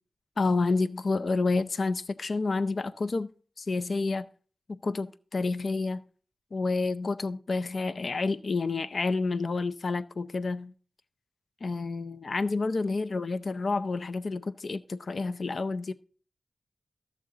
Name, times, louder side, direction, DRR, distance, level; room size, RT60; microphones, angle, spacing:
voice 1, 0.4-3.3 3.6-4.3 4.7-6.0 6.5-10.7 11.6-15.9, left 3 dB, 60° left, 0.5 m, -29 dB
13.5 x 7.3 x 3.8 m
wide cardioid pair, 90°, 0 cm